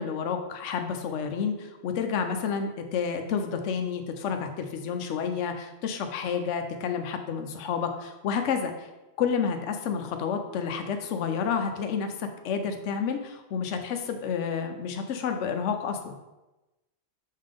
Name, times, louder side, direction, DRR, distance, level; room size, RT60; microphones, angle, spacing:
voice 1, 0.0-8.9 9.2-16.1, left 6 dB, 75° left, 5 dB, 1.0 m, -30 dB
6.5 x 3.7 x 5.1 m, 1.0 s
omnidirectional pair, 1.3 m